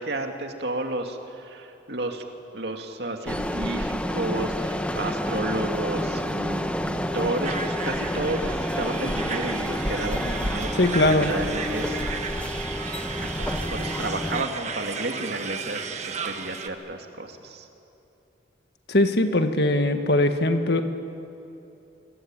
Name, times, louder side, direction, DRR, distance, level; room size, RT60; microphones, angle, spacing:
voice 1, 0.0-2.2 2.5-12.1 13.2-17.7, right 2 dB, 60° right, 4 dB, 2.5 m, -32 dB
sound 1, 3.3-14.4, equal, 5° left, 1.0 m, -29 dB
sound 2, 7.4-16.7, right 5 dB, 40° right, 1.6 m, -34 dB
voice 2, 10.7-11.3 18.9-20.8, left 1 dB, 60° left, 7 dB, 1.8 m, -21 dB
26.0 x 23.5 x 9.0 m, 2.8 s
head